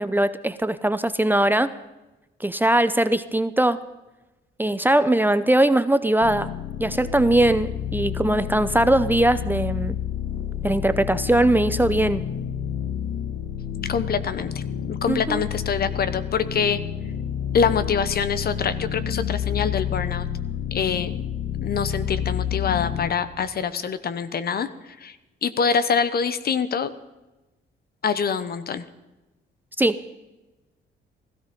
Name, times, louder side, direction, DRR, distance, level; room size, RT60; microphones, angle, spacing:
voice 1, 0.0-1.7 2.4-3.8 4.6-6.5 6.8-10.0 10.6-12.2 15.1-15.4 29.8-30.0, right 1 dB, 10° right, 12 dB, 0.6 m, -20 dB
sound 1, 6.2-23.1, left 9 dB, 80° left, 1.6 m, -29 dB
voice 2, 13.8-16.8 17.5-20.3 20.7-21.2 21.6-24.7 25.0-25.1 25.4-26.9 28.0-28.8, left 6 dB, 50° left, 13 dB, 1.0 m, -25 dB
16.0 x 14.0 x 5.3 m, 1.1 s
cardioid pair, 90°, 20 cm